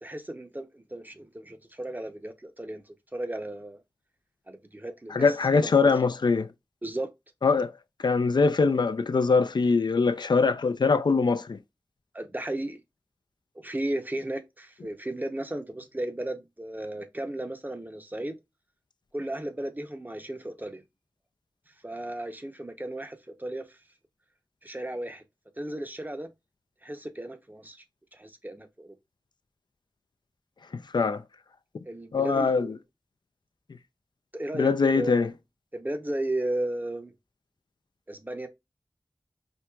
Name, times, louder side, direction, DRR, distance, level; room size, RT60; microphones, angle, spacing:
voice 1, 0.0-3.8 4.5-5.9 6.8-7.1 12.1-12.8 13.5-18.3 19.1-20.8 21.8-23.6 24.6-25.2 25.6-26.3 26.8-27.8 28.1-28.9 31.8-32.8 34.3-34.7 34.9-35.3 35.7-37.1 38.1-38.5, right 1 dB, 25° right, 0.7 m, -35 dB
voice 2, 5.1-6.5 7.4-7.7 8.0-11.6 30.7-31.2 32.1-32.8 34.5-35.3, left 4 dB, 70° left, 0.3 m, -23 dB
4.5 x 2.9 x 2.3 m
wide cardioid pair, 60°, 8 cm